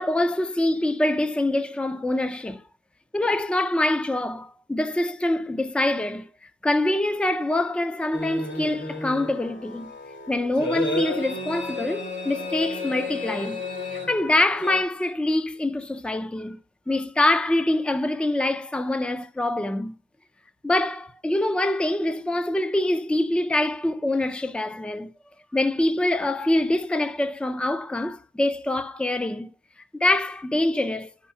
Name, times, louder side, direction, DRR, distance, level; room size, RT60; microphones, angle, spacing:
voice 1, 0.0-2.6 3.1-6.3 6.6-9.9 10.3-16.6 16.9-19.9 20.6-25.1 25.5-29.5 29.9-31.1, left 1 dB, 5° left, 0.5 m, -25 dB
sound 1, 8.1-14.8, left 2 dB, 65° left, 2.3 m, -32 dB
11.0 x 4.4 x 5.6 m
wide cardioid pair, 150°, 20 cm